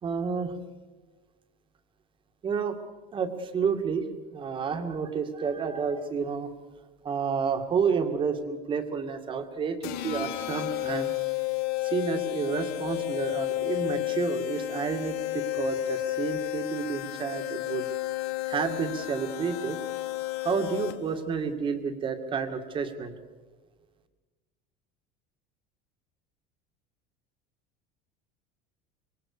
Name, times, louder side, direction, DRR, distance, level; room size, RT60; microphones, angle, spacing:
voice 1, 0.0-0.5 2.4-2.8 3.1-4.0 4.3-6.5 7.0-11.1 11.8-17.9 18.5-19.8 20.4-23.1, right 6 dB, 25° right, 7 dB, 2.4 m, -30 dB
sound 1, 9.8-21.2, left 19 dB, 60° left, 2.0 m, -32 dB
26.0 x 24.0 x 6.9 m, 1.3 s
cardioid pair, 155°, 19 cm